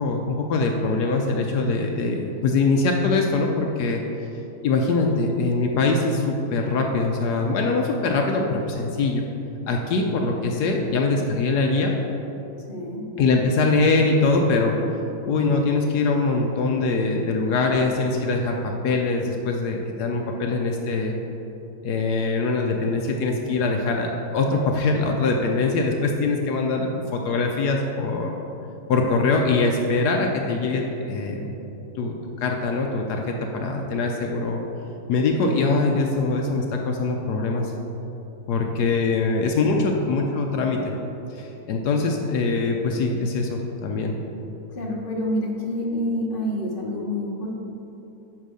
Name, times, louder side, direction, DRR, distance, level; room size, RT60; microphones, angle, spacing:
voice 1, 0.0-4.0 4.6-9.2 9.7-11.9 13.2-14.7 15.3-21.2 21.8-28.3 28.9-31.5 32.0-32.1 32.4-34.6 35.1-37.7 38.5-40.9 41.3-44.1, left 3 dB, 75° left, 2 dB, 1.2 m, -23 dB
voice 2, 12.7-13.0 39.6-39.9 44.7-47.5, left 1 dB, 35° left, -2 dB, 1.1 m, -28 dB
10.0 x 3.7 x 6.3 m, 3.0 s
omnidirectional pair, 1.8 m